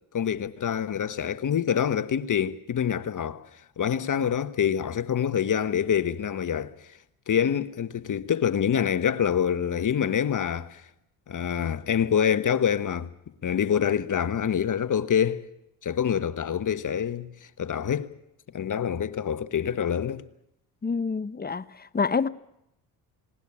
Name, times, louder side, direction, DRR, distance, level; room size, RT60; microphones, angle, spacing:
voice 1, 0.1-3.5 3.8-6.7 7.3-10.8 11.3-13.1 13.4-15.5 15.8-17.3 17.6-18.1 18.5-20.3, left 8 dB, 40° left, 1.3 m, -26 dB
voice 2, 20.8-22.3, left 5 dB, 20° left, 0.9 m, -27 dB
19.0 x 18.5 x 8.6 m
supercardioid pair, 65°, 47 cm